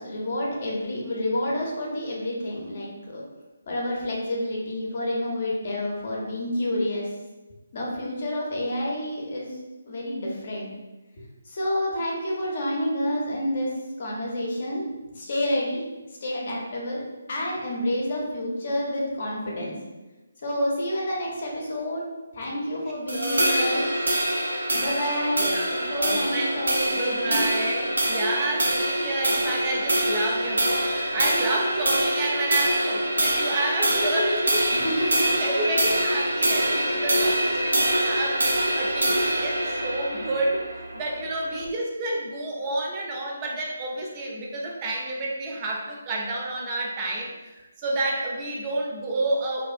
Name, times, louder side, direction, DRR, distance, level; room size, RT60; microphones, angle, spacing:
voice 1, 0.0-3.2 3.7-7.1 7.7-9.5 9.9-10.7 11.4-13.7 14.0-14.8 15.1-15.8 16.1-17.0 17.3-19.7 20.4-22.0 22.3-23.8 24.7-25.6 25.9-27.4 34.7-35.5, left 1 dB, 50° left, -3 dB, 0.8 m, -29 dB
voice 2, 23.1-23.7 25.4-49.6, right 2 dB, 25° right, -2 dB, 0.5 m, -30 dB
sound 1, 23.1-41.7, right 1 dB, 80° right, 0.5 m, -25 dB
2.7 x 2.4 x 2.5 m, 1.1 s
figure-of-eight pair, 150°, 0 cm